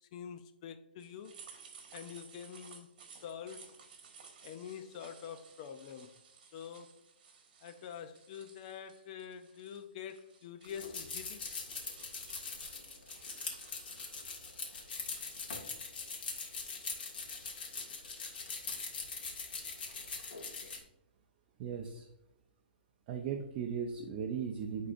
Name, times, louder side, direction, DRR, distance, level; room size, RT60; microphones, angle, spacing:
voice 1, 0.0-1.3 1.9-2.9 3.2-3.6 4.4-6.1 6.5-6.9 7.6-11.4, left 8 dB, 40° left, 0.5 m, -46 dB
sound 1, 1.0-15.4, right 6 dB, 55° right, 1.4 m, -57 dB
sound 2, 10.7-20.8, left 4 dB, 70° left, 1.8 m, -42 dB
voice 2, 21.6-22.1 23.1-24.9, right 7 dB, 35° right, 0.6 m, -37 dB
10.5 x 3.8 x 2.5 m
hypercardioid pair, 150°, 6 cm